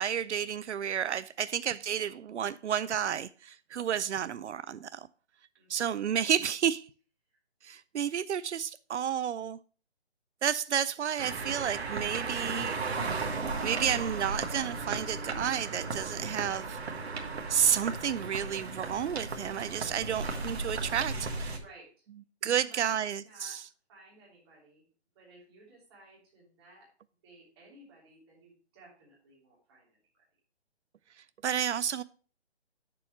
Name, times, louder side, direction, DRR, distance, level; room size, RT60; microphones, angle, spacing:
voice 1, 0.0-5.1 5.7-6.9 7.6-9.6 10.4-12.8 13.6-16.8 17.5-21.5 22.4-23.6 31.2-32.0, right 8 dB, 85° right, 0.5 m, -31 dB
voice 2, 5.6-5.9 19.7-20.1 21.6-21.9 22.4-23.6 23.9-24.8 25.1-26.9 27.2-30.2, right 2 dB, 20° right, 3.1 m, -56 dB
sound 1, 11.2-21.6, right 3 dB, 65° right, 1.5 m, -35 dB
8.9 x 6.9 x 3.1 m
hypercardioid pair, 170°, 34 cm